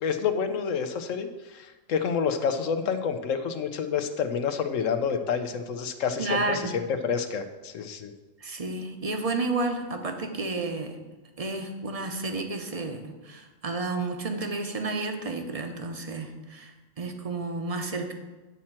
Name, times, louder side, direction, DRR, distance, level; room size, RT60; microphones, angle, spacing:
voice 1, 0.0-8.1, left 6 dB, 85° left, 8 dB, 1.1 m, -28 dB
voice 2, 6.2-6.7 8.4-11.0 11.4-18.1, right 3 dB, 30° right, 4 dB, 0.9 m, -31 dB
9.6 x 4.3 x 7.3 m, 1.2 s
omnidirectional pair, 1.3 m